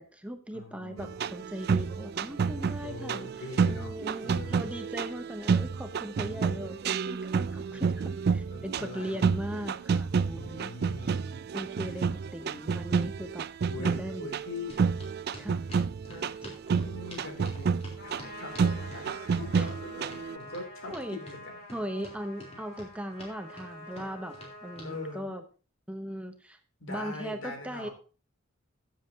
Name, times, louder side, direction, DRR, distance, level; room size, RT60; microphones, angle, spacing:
voice 1, 0.0-10.7 11.0-11.2 11.5-13.5 13.8-14.3 15.4-15.6 16.4-16.5 19.5-19.7 20.9-21.2 21.7-24.4 24.6-25.4 25.9-26.6 26.9-27.9, equal, 5° right, 6 dB, 0.8 m, -39 dB
voice 2, 0.5-1.2 2.8-4.6 5.6-5.7 7.6-7.9 8.5-9.2 9.6-9.7 10.3-11.4 11.9-12.0 13.7-15.1 16.0-16.3 16.7-21.5 24.8-25.3 26.8-27.9, left 2 dB, 75° left, 2 dB, 3.0 m, -42 dB
sound 1, 1.0-20.4, right 5 dB, 50° right, 0.4 m, -30 dB
sound 2, 14.7-24.9, left 1 dB, 30° left, 3.8 m, -48 dB
Trumpet, 18.0-25.2, left 1 dB, 50° left, 4.2 m, -47 dB
15.0 x 7.6 x 2.8 m, 0.36 s
head